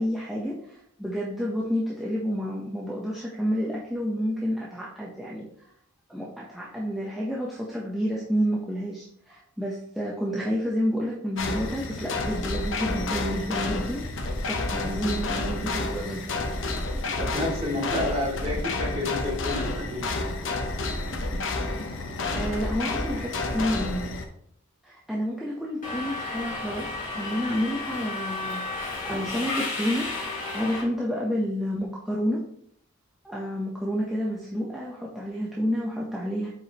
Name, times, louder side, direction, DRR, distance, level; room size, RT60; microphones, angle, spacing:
voice 1, 0.0-5.5 6.1-16.2 22.3-24.1 24.8-30.1 30.5-32.4 33.2-36.5, equal, ahead, -5 dB, 0.8 m, -30 dB
sound 1, 11.4-24.3, left 2 dB, 60° left, 0.8 m, -30 dB
voice 2, 17.2-20.0, left 1 dB, 30° right, -5 dB, 2.2 m, -30 dB
Subway metro underground, 25.8-30.8, left 3 dB, 40° left, 2.0 m, -33 dB
7.5 x 4.8 x 3.0 m, 0.68 s
head